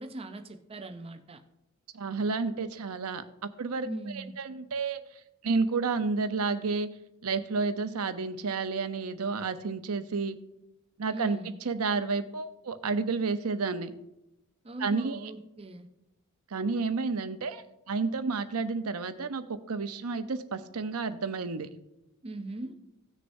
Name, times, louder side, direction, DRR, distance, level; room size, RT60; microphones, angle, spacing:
voice 1, 0.0-1.4 3.8-4.4 11.1-11.6 14.6-15.9 22.2-22.8, right 2 dB, 25° right, 6 dB, 0.6 m, -40 dB
voice 2, 1.9-3.9 4.1-5.0 5.4-6.9 7.2-10.4 11.0-11.4 11.6-13.9 14.8-15.3 16.5-21.7, right 4 dB, 90° right, 10 dB, 0.7 m, -31 dB
17.0 x 6.6 x 2.7 m, 0.88 s
head